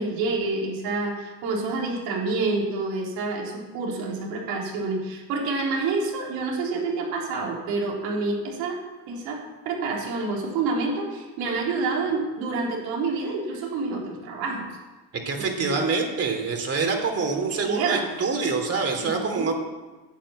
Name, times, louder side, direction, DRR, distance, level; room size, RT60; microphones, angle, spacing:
voice 1, 0.0-8.8 9.1-14.7 15.4-15.8 17.5-18.1 19.0-19.5, right 3 dB, 80° right, -2 dB, 4.0 m, -28 dB
voice 2, 15.2-19.6, right 4 dB, 40° right, 3 dB, 2.9 m, -26 dB
10.5 x 8.8 x 8.7 m, 1.2 s
cardioid pair, 110°, 36 cm